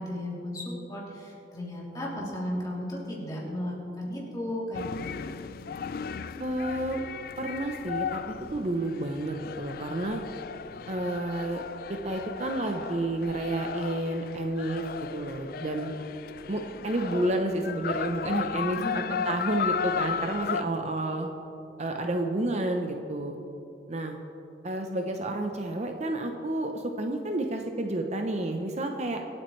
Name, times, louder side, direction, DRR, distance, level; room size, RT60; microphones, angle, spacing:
voice 1, 0.0-5.2 18.7-19.3, left 1 dB, 20° left, -5 dB, 3.1 m, -35 dB
sound 1, 4.7-20.6, left 7 dB, 55° left, 0.4 m, -35 dB
voice 2, 6.4-7.0 7.4-10.2 10.9-11.6 11.9-14.9 15.1-15.9 16.5-18.8 19.3-21.3 21.8-23.4 23.9-24.2 24.6-29.2, right 1 dB, 40° right, 4 dB, 0.7 m, -30 dB
25.5 x 8.7 x 3.2 m, 2.9 s
head